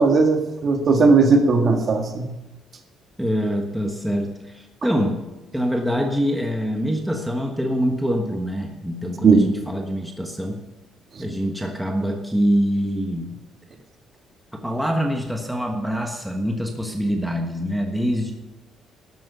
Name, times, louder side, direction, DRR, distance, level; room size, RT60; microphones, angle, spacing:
voice 1, 0.0-2.3 9.2-9.4, right 4 dB, 40° right, 4 dB, 1.8 m, -17 dB
voice 2, 3.2-5.2 5.5-10.6 11.2-13.4 14.6-18.3, equal, 5° right, 2 dB, 1.4 m, -24 dB
13.0 x 8.9 x 6.8 m, 1.0 s
cardioid pair, 150°, 0 cm